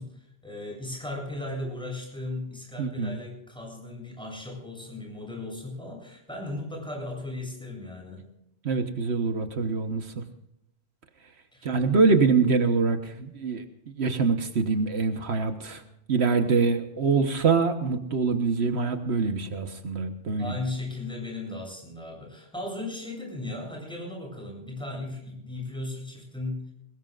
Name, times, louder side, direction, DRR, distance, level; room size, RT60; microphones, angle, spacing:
voice 1, 0.0-8.3 11.5-11.7 20.4-26.7, left 2 dB, 5° left, -1 dB, 7.7 m, -36 dB
voice 2, 2.8-3.2 8.6-10.2 11.6-13.6 14.0-15.8 16.1-20.5, right 4 dB, 80° right, 7 dB, 1.5 m, -24 dB
21.5 x 20.0 x 2.5 m, 0.79 s
omnidirectional pair, 1.1 m